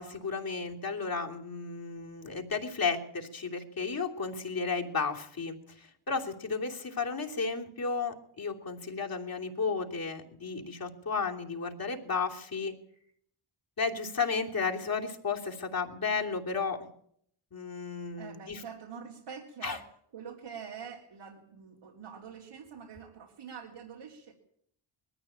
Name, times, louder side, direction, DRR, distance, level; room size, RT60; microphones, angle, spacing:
voice 1, 0.0-12.7 13.8-16.9 17.5-18.6 19.6-19.8, left 4 dB, 45° left, 0 dB, 3.1 m, -33 dB
voice 2, 18.2-19.9 20.1-24.3, right 7 dB, 80° right, -2 dB, 3.7 m, -45 dB
22.0 x 14.0 x 8.7 m, 0.67 s
wide cardioid pair, 140°, 50 cm